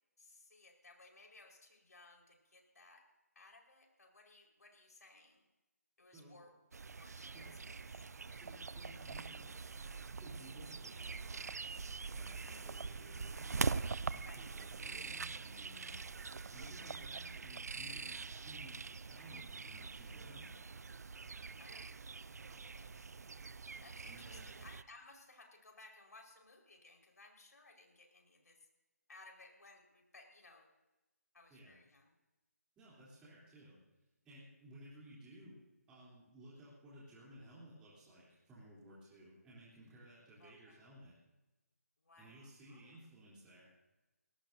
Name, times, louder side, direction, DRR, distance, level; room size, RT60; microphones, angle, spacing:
voice 1, 0.2-3.1 3.3-5.4 6.0-6.6 7.0-8.0 12.4-12.9 14.2-14.5 21.6-22.0 22.5-23.1 23.8-28.6 29.1-30.7 31.3-32.1 40.4-40.8 42.0-43.0, left 2 dB, 75° left, 1 dB, 4.8 m, -60 dB
sound 1, 6.7-24.8, right 4 dB, 70° right, 0.5 m, -44 dB
voice 2, 8.3-9.8 10.2-11.6 12.1-13.8 14.0-16.1 16.5-20.6 24.0-24.5 31.5-31.8 32.8-33.8 34.2-35.6 35.9-41.2 42.2-43.7, right 1 dB, 10° right, -8 dB, 3.4 m, -57 dB
22.0 x 18.0 x 2.7 m, 1.1 s
figure-of-eight pair, 165°, 9 cm